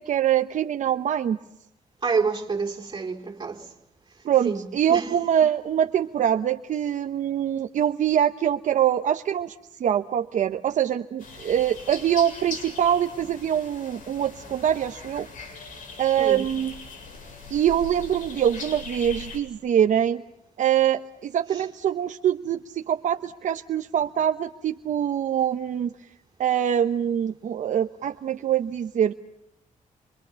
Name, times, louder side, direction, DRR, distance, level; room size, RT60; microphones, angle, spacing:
voice 1, 0.0-1.4 4.2-15.3 16.0-16.7 17.5-20.2 20.6-25.9 26.4-29.1, right 10 dB, 65° right, 0.9 m, -24 dB
voice 2, 2.0-3.7 4.4-5.1 16.2-16.5 21.5-21.6, right 5 dB, 35° right, 3.9 m, -28 dB
sound 1, 11.2-19.4, left 4 dB, 75° left, 7.4 m, -40 dB
27.5 x 25.0 x 7.0 m
wide cardioid pair, 160°, 14 cm